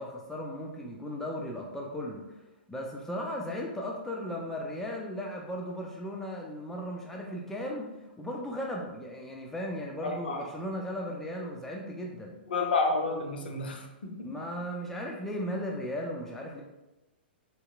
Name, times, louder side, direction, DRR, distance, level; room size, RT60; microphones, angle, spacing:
voice 1, 0.0-12.4 14.2-16.6, equal, 5° left, -2 dB, 0.3 m, -36 dB
voice 2, 10.0-10.4 12.5-14.3, left 3 dB, 60° left, 3 dB, 0.5 m, -30 dB
2.9 x 2.8 x 2.3 m, 0.97 s
figure-of-eight pair, 105°, 6 cm